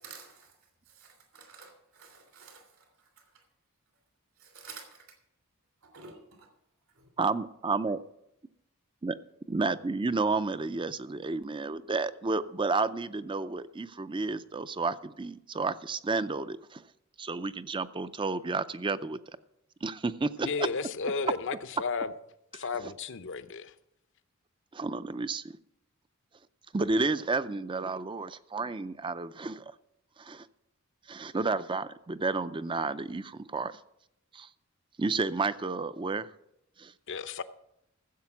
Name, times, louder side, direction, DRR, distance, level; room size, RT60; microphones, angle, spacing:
voice 1, 0.0-0.5 0.9-2.8 3.2-3.3 4.4-5.0 5.9-6.5 7.0-7.1, right 5 dB, 65° right, 2.9 m, -50 dB
voice 2, 7.2-8.0 9.0-9.1 9.5-16.8 17.2-19.2 19.8-20.7 22.5-22.6 24.7-25.6 26.7-29.7 30.2-30.5 31.1-33.8 34.3-34.5 35.0-36.3 36.8-36.9, right 3 dB, 20° right, 0.5 m, -31 dB
voice 3, 20.4-22.1 22.5-23.7 37.1-37.4, left 4 dB, 60° left, 0.7 m, -33 dB
15.0 x 7.7 x 6.0 m
head